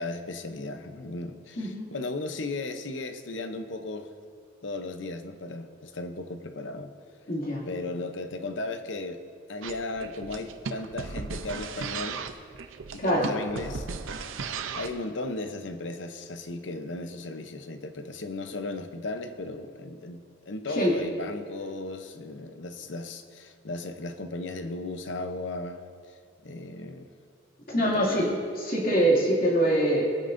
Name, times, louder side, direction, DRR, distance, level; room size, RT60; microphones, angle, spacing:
voice 1, 0.0-4.1 4.6-6.9 7.7-9.2 9.5-12.2 12.9-13.9 14.7-26.2 26.4-27.1 27.8-28.3, left 2 dB, 65° left, 0.7 m, -36 dB
voice 2, 1.6-1.9 7.3-7.6 13.0-13.3 20.8-20.9 27.7-28.4 28.7-30.0, right 1 dB, 45° left, 2.4 m, -24 dB
sound 1, 9.6-15.0, right 5 dB, 80° right, 0.6 m, -36 dB
20.0 x 9.2 x 2.6 m
head